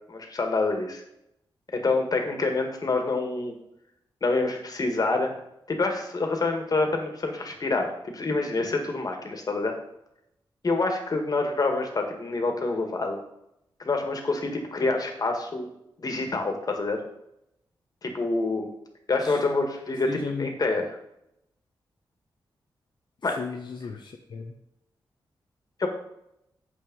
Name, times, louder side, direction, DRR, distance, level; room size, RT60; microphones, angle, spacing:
voice 1, 0.1-1.0 1.7-3.5 4.2-5.3 5.7-9.8 10.6-13.2 13.8-15.7 16.0-17.0 18.0-18.7 19.1-20.9 23.2-23.4 25.8-25.9, left 3 dB, 50° left, 4 dB, 1.8 m, -27 dB
voice 2, 20.1-20.5 23.4-24.5, left 5 dB, 65° left, 2 dB, 0.8 m, -35 dB
7.8 x 6.1 x 5.4 m, 0.80 s
cardioid pair, 85°, 8 cm